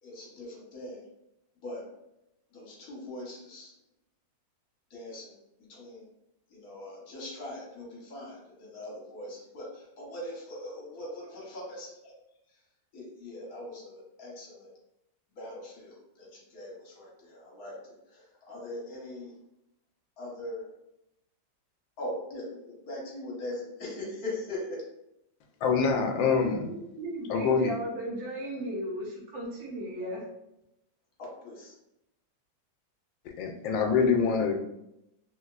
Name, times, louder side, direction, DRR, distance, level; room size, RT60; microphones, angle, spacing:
voice 1, 0.0-1.0 1.5-2.0 2.5-3.8 4.9-6.1 6.5-12.1 12.5-14.7 15.3-19.4 20.2-20.7 22.0-24.8 31.3-31.7, left 1 dB, 55° left, -3 dB, 1.3 m, -41 dB
voice 2, 25.6-26.7 27.3-27.8 33.3-34.5, left 5 dB, 85° left, 5 dB, 1.3 m, -25 dB
voice 3, 26.6-30.2, right 1 dB, 75° right, -2 dB, 1.6 m, -36 dB
3.5 x 2.8 x 2.3 m, 0.85 s
omnidirectional pair, 2.0 m